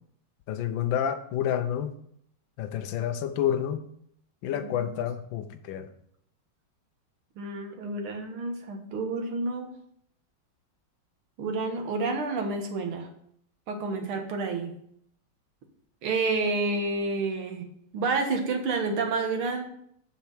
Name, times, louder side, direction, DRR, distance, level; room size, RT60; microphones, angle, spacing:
voice 1, 0.5-1.9 2.6-3.8 4.4-5.9, left 9 dB, 70° left, 8 dB, 1.5 m, -29 dB
voice 2, 7.4-9.7 11.4-13.1 13.7-14.7 16.0-19.6, right 3 dB, 85° right, 4 dB, 2.2 m, -29 dB
7.4 x 5.8 x 5.7 m, 0.68 s
omnidirectional pair, 2.3 m